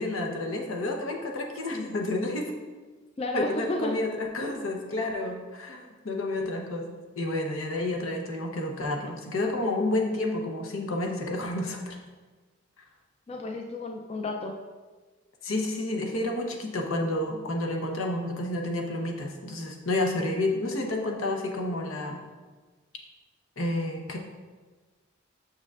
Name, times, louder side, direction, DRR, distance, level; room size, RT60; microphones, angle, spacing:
voice 1, 0.0-2.5 3.3-12.0 15.4-22.2 23.6-24.2, left 2 dB, 85° left, 2 dB, 0.9 m, -30 dB
voice 2, 3.2-4.0 13.3-14.5, left 2 dB, 30° left, 3 dB, 0.3 m, -32 dB
6.5 x 6.3 x 2.4 m, 1.3 s
head